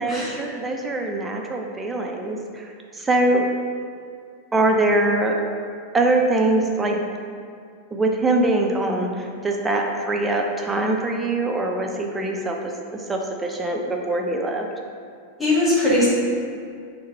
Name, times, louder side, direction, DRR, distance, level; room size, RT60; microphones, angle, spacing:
voice 1, 0.0-3.5 4.5-5.4 5.9-7.0 7.9-14.7, right 2 dB, 15° right, 1 dB, 0.5 m, -23 dB
voice 2, 15.4-16.1, left 1 dB, 5° left, -9 dB, 1.3 m, -19 dB
4.6 x 2.2 x 4.5 m, 2.2 s
figure-of-eight pair, 90°, 0 cm